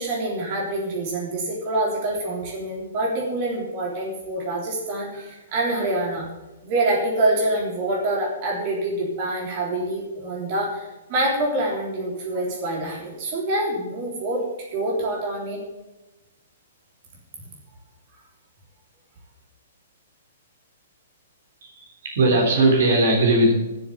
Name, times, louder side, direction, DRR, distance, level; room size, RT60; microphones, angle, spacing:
voice 1, 0.0-6.3 6.6-10.8 11.1-14.4 14.7-15.6, right 1 dB, 35° right, -2 dB, 3.5 m, -26 dB
voice 2, 21.6-23.5, right 2 dB, 55° right, 1 dB, 3.5 m, -19 dB
12.5 x 7.3 x 7.3 m, 1.1 s
figure-of-eight pair, 115°, 0 cm